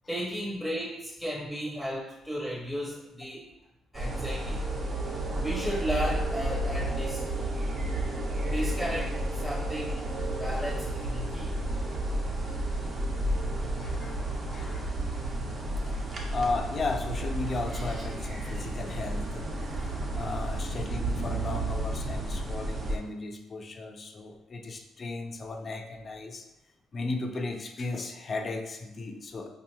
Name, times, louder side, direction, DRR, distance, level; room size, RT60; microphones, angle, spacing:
voice 1, 0.1-3.5 3.9-4.7 5.4-7.3 8.4-9.9 10.3-11.5, equal, ahead, -5 dB, 0.7 m, -34 dB
sound 1, 3.9-23.0, right 1 dB, 40° right, 0.7 m, -32 dB
voice 2, 13.8-14.2 14.5-15.1 15.6-16.1 16.3-26.5 26.9-29.5, left 3 dB, 40° left, 4 dB, 0.4 m, -35 dB
4.8 x 2.8 x 2.3 m, 0.95 s
cardioid pair, 100°, 0 cm